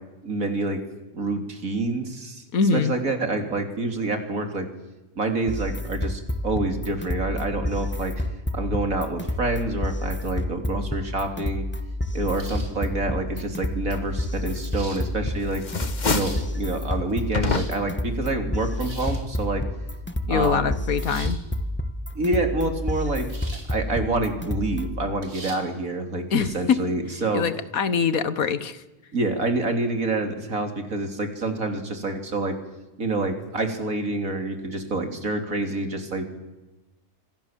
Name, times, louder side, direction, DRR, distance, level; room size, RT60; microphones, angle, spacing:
voice 1, 0.2-0.8 1.1-2.4 2.7-4.7 5.2-8.3 8.5-11.6 12.1-15.6 16.0-19.6 20.3-20.7 22.2-23.3 23.7-26.2 26.5-27.4 29.1-32.6 33.0-36.3, right 2 dB, 65° right, 5 dB, 3.7 m, -27 dB
voice 2, 2.5-2.9 20.3-21.4 26.3-26.8 27.3-28.8, left 6 dB, 70° left, 14 dB, 1.7 m, -23 dB
sound 1, 5.5-25.0, left 1 dB, 10° left, 1.6 m, -29 dB
sound 2, 12.4-12.8 13.9-14.0 14.7-15.0 15.9-16.5 17.2-17.8 18.7-19.3 21.0-21.4 23.3-23.7 24.1-24.2 25.2-25.6, right 2 dB, 85° right, 4.3 m, -42 dB
sound 3, 14.8-15.2 15.5-16.5 17.3-18.0, left 4 dB, 30° left, 1.3 m, -27 dB
26.5 x 26.0 x 7.6 m, 1.1 s
omnidirectional pair, 1.6 m